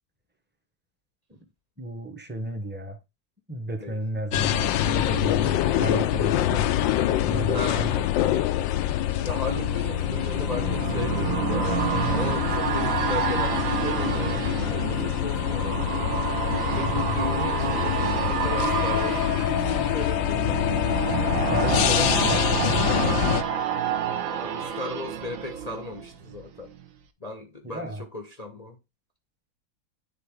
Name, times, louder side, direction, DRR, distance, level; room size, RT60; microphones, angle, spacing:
voice 1, 1.8-3.0 3.5-6.7 7.2-7.9 16.8-17.2 21.5-23.2 27.6-28.0, right 1 dB, 10° right, 0.8 m, -33 dB
sound 1, 4.3-23.4, left 13 dB, 85° left, 1.3 m, -25 dB
voice 2, 7.4-7.9 9.0-11.7 12.1-16.1 16.7-20.6 24.3-26.7 27.2-28.8, left 2 dB, 35° left, 0.6 m, -36 dB
sound 2, 8.6-26.4 26.7-26.8, right 8 dB, 60° right, 1.0 m, -29 dB
9.9 x 3.9 x 3.7 m
omnidirectional pair, 2.0 m